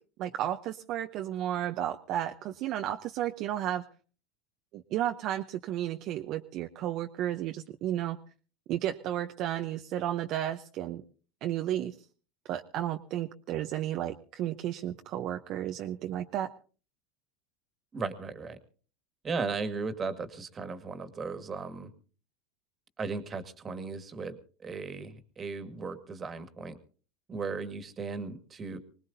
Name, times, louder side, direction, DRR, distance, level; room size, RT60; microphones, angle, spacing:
voice 1, 0.2-3.8 4.7-8.2 8.7-11.0 11.4-12.0 12.5-16.5, right 12 dB, 50° right, 6 dB, 0.7 m, -33 dB
voice 2, 17.9-18.6 19.2-21.9 23.0-24.3 24.6-26.7 27.3-28.8, right 4 dB, 25° right, 10 dB, 1.8 m, -36 dB
24.5 x 19.0 x 2.7 m, 0.39 s
supercardioid pair, 105°, 0 cm